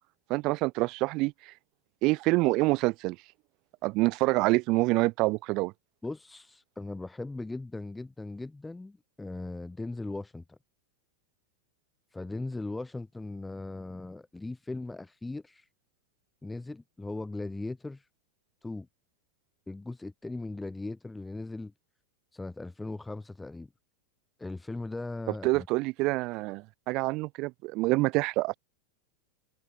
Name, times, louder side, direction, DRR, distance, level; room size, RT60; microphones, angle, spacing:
voice 1, 0.3-1.5 2.0-3.2 3.8-5.7 25.4-28.5, right 23 dB, 40° right, 2.1 m, -26 dB
voice 2, 6.0-10.6 12.1-15.7 16.4-18.1 18.6-18.9 19.7-21.7 22.3-23.7 24.4-25.7, left 2 dB, 5° left, 2.2 m, -38 dB
open air
figure-of-eight pair, 90°, 0 cm